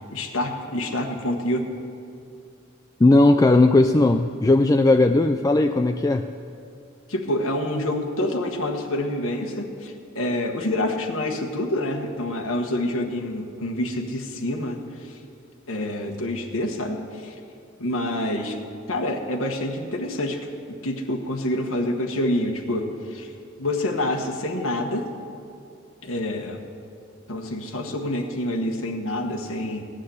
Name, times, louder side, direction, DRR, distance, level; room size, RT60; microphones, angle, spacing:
voice 1, 0.1-1.7 7.1-15.2 15.7-17.4 17.8-18.6 18.9-23.3 23.6-25.1 26.0-26.6 27.3-29.8, left 1 dB, 90° left, 2 dB, 1.4 m, -27 dB
voice 2, 3.0-6.3, left 2 dB, 15° left, 6 dB, 0.3 m, -17 dB
16.5 x 6.6 x 9.7 m, 2.6 s
head